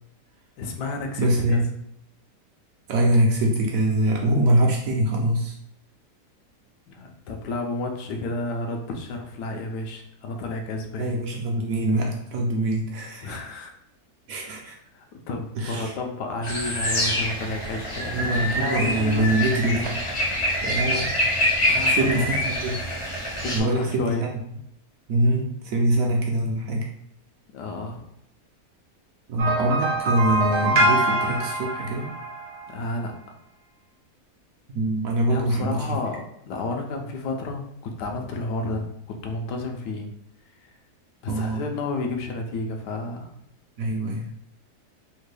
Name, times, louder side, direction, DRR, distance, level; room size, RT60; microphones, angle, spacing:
voice 1, 0.6-1.6 6.9-11.1 13.2-13.7 14.9-18.3 18.6-19.2 21.7-22.3 23.4-24.2 27.5-28.0 32.7-33.1 35.3-40.1 41.2-43.3, left 2 dB, 90° left, 3 dB, 1.2 m, -31 dB
voice 2, 1.2-1.7 2.9-5.6 11.0-13.4 14.3-14.8 15.6-15.9 18.1-20.0 20.6-21.1 21.9-22.8 23.5-24.3 25.1-26.8 29.3-32.1 34.7-36.0 41.3-41.6 43.8-44.3, right 1 dB, 65° right, 0 dB, 0.9 m, -24 dB
sound 1, 16.4-23.6, left 1 dB, 45° left, 0.4 m, -25 dB
sound 2, 29.4-32.7, right 1 dB, 85° right, 1.3 m, -24 dB
3.4 x 2.2 x 3.2 m, 0.76 s
omnidirectional pair, 1.8 m